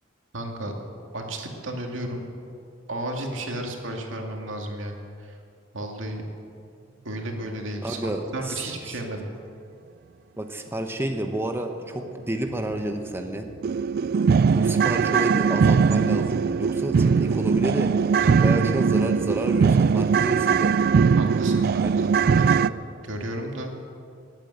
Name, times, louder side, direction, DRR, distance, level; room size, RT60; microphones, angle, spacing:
voice 1, 0.3-0.7 1.1-2.2 2.9-5.4 5.7-6.2 7.0-9.3 18.2-18.4 21.2-22.6 23.0-23.7, right 1 dB, 85° right, 2 dB, 2.2 m, -33 dB
voice 2, 7.8-9.0 10.4-13.5 14.5-17.9 18.4-20.8 21.9-22.1, right 1 dB, 10° right, 4 dB, 0.8 m, -30 dB
sound 1, 12.7-12.8 13.2-13.3 13.6-22.7, right 5 dB, 50° right, 0.3 m, -20 dB
19.0 x 8.9 x 8.1 m, 2.4 s
head